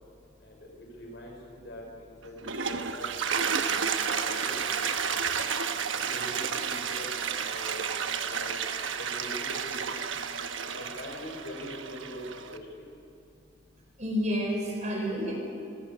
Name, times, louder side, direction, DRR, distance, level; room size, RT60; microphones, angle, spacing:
voice 1, 1.0-1.3 1.6-1.8 2.2-2.3 2.6-3.5 3.8-5.2 6.1-7.1 7.5-8.5 9.0-9.8 10.8-12.2 12.5-12.8, left 1 dB, 60° left, 0 dB, 5.5 m, -43 dB
Toilet flush, 2.2-12.6, right 6 dB, 80° right, 1.1 m, -31 dB
voice 2, 14.0-15.4, equal, 40° right, -1 dB, 4.9 m, -29 dB
28.0 x 15.5 x 6.8 m, 2.5 s
head